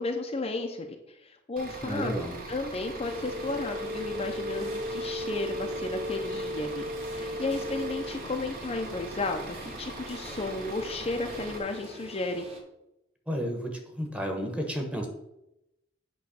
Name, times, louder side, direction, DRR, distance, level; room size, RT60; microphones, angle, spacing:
voice 1, 0.0-2.1 2.5-12.5, left 2 dB, 30° left, 3 dB, 0.6 m, -33 dB
Bus / Idling, 1.6-11.6, right 2 dB, 50° right, 1.1 m, -42 dB
voice 2, 1.8-2.3 13.3-15.1, equal, 5° right, 2 dB, 1.1 m, -32 dB
sound 1, 3.0-12.6, left 1 dB, 30° right, 1.3 m, -37 dB
8.4 x 3.1 x 6.3 m, 0.88 s
head